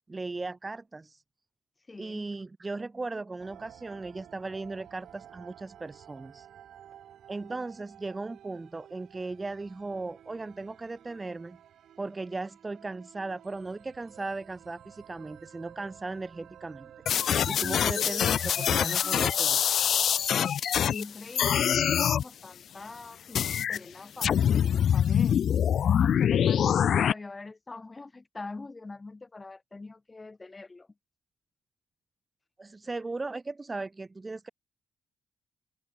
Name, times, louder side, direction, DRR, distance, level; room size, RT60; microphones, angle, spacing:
voice 1, 0.1-1.2 2.0-6.5 7.3-11.6 12.0-16.9 17.5-19.6 32.6-34.5, right 3 dB, 20° right, 1.5 m, -37 dB
voice 2, 1.9-2.2 17.3-17.8 20.9-30.9, left 3 dB, 25° left, 3.2 m, -44 dB
sound 1, 3.4-20.3, right 10 dB, 70° right, 1.5 m, -52 dB
sound 2, 17.1-21.0 21.3-22.2 23.3-23.8 24.2-27.1, left 9 dB, 60° left, 0.3 m, -24 dB
open air
cardioid pair, 90°, 0 cm